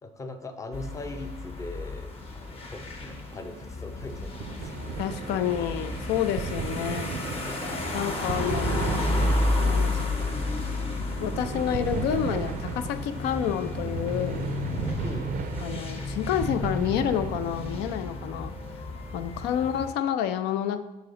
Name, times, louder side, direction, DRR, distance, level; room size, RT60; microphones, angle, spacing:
voice 1, 0.0-4.8 15.0-15.4 19.5-19.6, left 2 dB, 20° left, 7 dB, 0.5 m, -40 dB
sound 1, 0.7-19.9, left 2 dB, 35° left, 1.0 m, -32 dB
sound 2, 4.0-17.9, right 8 dB, 50° right, 0.4 m, -36 dB
voice 2, 5.0-7.1 7.9-9.0 9.6-10.3 11.2-14.4 15.6-18.5 19.1-20.8, left 10 dB, 85° left, 11 dB, 0.4 m, -29 dB
sound 3, 5.1-19.7, left 3 dB, 70° left, 1.5 m, -48 dB
6.6 x 3.8 x 3.9 m, 1.0 s
cardioid pair, 110°, 17 cm